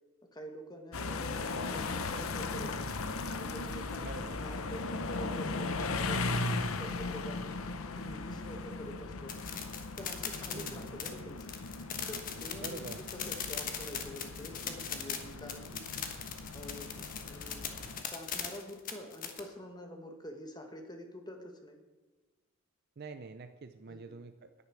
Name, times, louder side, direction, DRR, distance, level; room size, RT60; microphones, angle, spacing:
voice 1, 0.3-2.9 3.3-7.5 8.0-9.4 10.0-11.5 12.1-15.8 16.5-16.9 17.3-17.6 18.1-21.8 23.9-24.2, equal, 20° left, 5 dB, 1.3 m, -47 dB
sound 1, 0.9-18.0, left 3 dB, 85° left, 0.8 m, -38 dB
voice 2, 4.0-4.4 10.5-10.9 12.6-13.0 23.0-24.6, right 4 dB, 50° right, 8 dB, 0.5 m, -45 dB
sound 2, 9.3-19.4, left 7 dB, 40° left, 1.2 m, -39 dB
10.5 x 9.6 x 6.1 m, 1.3 s
head